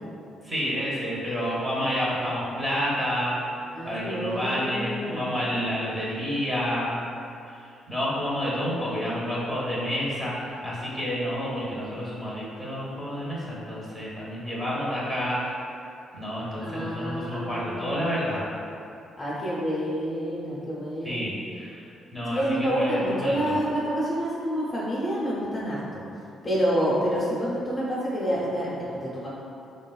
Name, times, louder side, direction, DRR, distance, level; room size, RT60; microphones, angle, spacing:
voice 1, 0.4-3.4 3.8-7.0 7.5-15.6 16.1-18.4 21.0-23.6, equal, 10° right, -7 dB, 0.9 m, -29 dB
voice 2, 3.7-5.3 16.6-18.1 19.2-21.3 22.3-26.0 26.4-29.3, equal, 25° left, -8 dB, 0.7 m, -28 dB
3.1 x 2.3 x 2.3 m, 2.6 s
cardioid pair, 90°, 0 cm